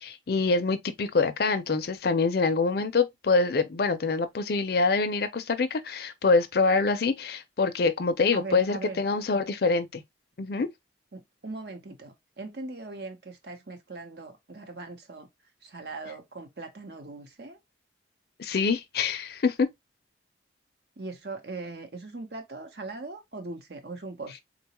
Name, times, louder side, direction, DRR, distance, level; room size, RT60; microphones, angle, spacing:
voice 1, 0.0-10.0 10.4-10.7 18.4-19.7, left 4 dB, 55° left, 0.5 m, -25 dB
voice 2, 8.3-9.0 11.1-15.3 15.6-17.6 21.0-24.4, right 3 dB, 60° right, 0.9 m, -40 dB
3.8 x 2.3 x 2.9 m
head